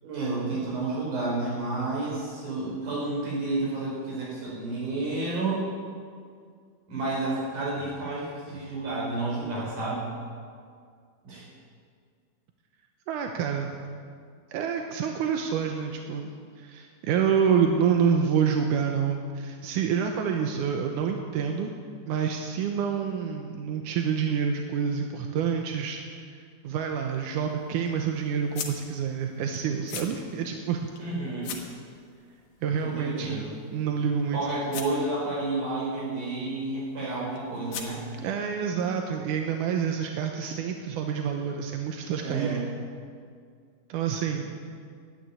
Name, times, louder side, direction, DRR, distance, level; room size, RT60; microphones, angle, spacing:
voice 1, 0.0-5.7 6.9-10.1 11.2-11.5 31.0-31.5 32.8-33.5 34.3-38.0 42.1-42.6, right 2 dB, 50° right, -5 dB, 6.0 m, -30 dB
voice 2, 13.1-13.8 14.5-16.3 16.6-21.7 22.1-26.4 26.6-30.9 32.6-34.4 38.2-42.7 43.9-44.6, right 7 dB, 75° right, 3 dB, 1.9 m, -27 dB
sound 1, 26.7-38.3, left 7 dB, 85° left, 3.6 m, -45 dB
13.0 x 9.4 x 9.6 m, 2.1 s
omnidirectional pair, 4.5 m